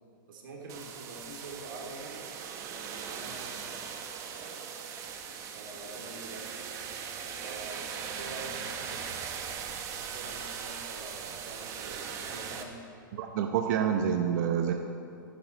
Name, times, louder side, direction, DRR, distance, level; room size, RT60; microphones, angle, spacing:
voice 1, 0.3-2.3 2.9-3.9 4.3-4.7 5.2-6.5 7.4-9.1 10.0-12.9, right 2 dB, 70° right, -1 dB, 3.0 m, -46 dB
sound 1, 0.7-12.6, right 7 dB, 25° right, 0.9 m, -39 dB
voice 2, 13.2-14.7, right 8 dB, 55° right, 4 dB, 0.8 m, -27 dB
13.0 x 10.5 x 4.5 m, 2.4 s
hypercardioid pair, 145°, 11 cm